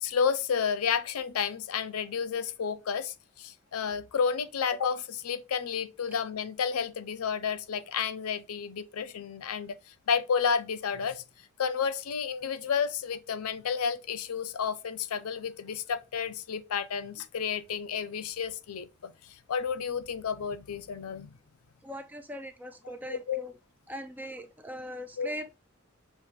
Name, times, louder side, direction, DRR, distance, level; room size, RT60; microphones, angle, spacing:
voice 1, 0.0-11.2 11.6-21.4 22.8-22.9 23.3-23.4 25.2-25.3, left 6 dB, 90° left, 0.5 m, -31 dB
voice 2, 21.8-23.5 23.9-25.6, equal, 10° right, 0.4 m, -40 dB
6.4 x 2.6 x 2.9 m
head